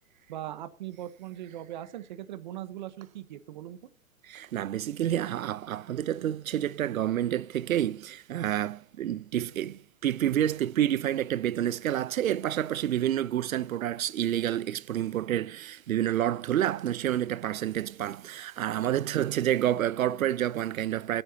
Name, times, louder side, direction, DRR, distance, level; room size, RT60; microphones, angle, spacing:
voice 1, 0.3-3.9, right 12 dB, 35° right, 1.0 m, -40 dB
voice 2, 4.2-21.2, right 11 dB, 85° right, 0.7 m, -29 dB
25.0 x 9.0 x 2.9 m
hypercardioid pair, 170°, 40 cm